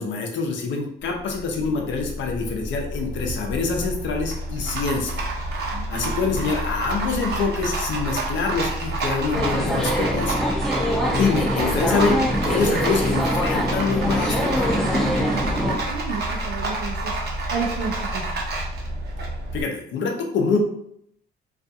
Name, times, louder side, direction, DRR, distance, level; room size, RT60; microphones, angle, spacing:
voice 1, 0.0-10.4 11.1-14.6 19.5-20.6, left 4 dB, 70° left, 2 dB, 0.6 m, -25 dB
Rattle, 1.0-19.6, right 2 dB, 55° right, 0.7 m, -28 dB
voice 2, 5.7-6.2 15.2-17.2 17.5-18.2, right 5 dB, 85° right, -1 dB, 0.4 m, -31 dB
sound 1, 9.3-15.8, equal, ahead, 0.5 m, -24 dB
2.4 x 2.3 x 2.6 m, 0.71 s
cardioid pair, 90°, 20 cm